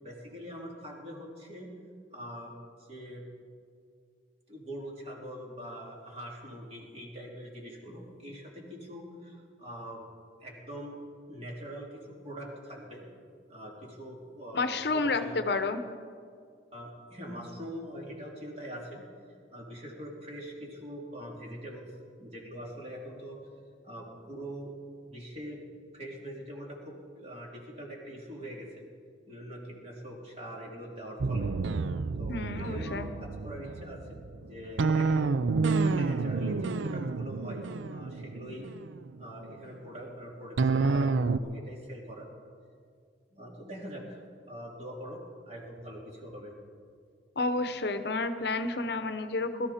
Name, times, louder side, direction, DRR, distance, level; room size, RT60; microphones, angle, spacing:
voice 1, 0.0-1.7 2.1-2.5 2.8-3.2 4.5-10.0 10.4-11.0 11.3-13.1 13.5-15.4 16.7-19.0 19.5-21.9 22.2-23.4 23.8-24.7 25.0-25.6 25.9-28.8 29.3-31.5 32.2-33.1 33.4-35.4 35.8-38.7 39.2-42.3 43.3-44.2 44.5-45.2 45.4-46.5, equal, 35° right, -2 dB, 3.1 m, -43 dB
voice 2, 14.5-15.8 32.3-33.1 47.4-49.7, left 3 dB, 60° left, 9 dB, 0.8 m, -30 dB
sound 1, 31.2-39.5 40.6-41.4, right 4 dB, 85° right, 0.5 m, -29 dB
21.5 x 13.0 x 4.3 m, 2.2 s
head